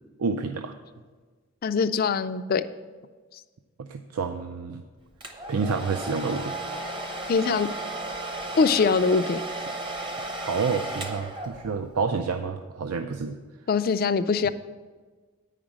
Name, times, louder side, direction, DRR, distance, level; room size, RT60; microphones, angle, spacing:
voice 1, 0.2-0.7 3.8-4.8 5.5-6.5 10.5-13.4, right 5 dB, 80° right, 7 dB, 0.5 m, -29 dB
voice 2, 1.6-2.6 3.3-3.4 7.3-7.7 8.6-9.4 13.7-14.5, left 5 dB, 40° left, 12 dB, 0.3 m, -23 dB
Domestic sounds home sounds, 5.2-11.9, right 2 dB, 20° right, 0.7 m, -34 dB
9.4 x 5.1 x 7.2 m, 1.4 s
head